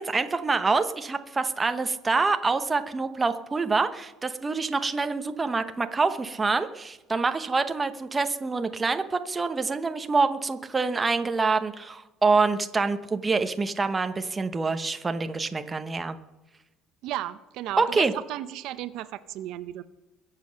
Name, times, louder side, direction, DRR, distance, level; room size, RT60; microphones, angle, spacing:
voice 1, 0.0-16.2 17.8-18.1, right 4 dB, 15° right, 8 dB, 0.9 m, -26 dB
voice 2, 17.0-19.8, right 13 dB, 60° right, 13 dB, 0.7 m, -34 dB
22.0 x 7.6 x 6.3 m, 1.0 s
cardioid pair, 155°, 0 cm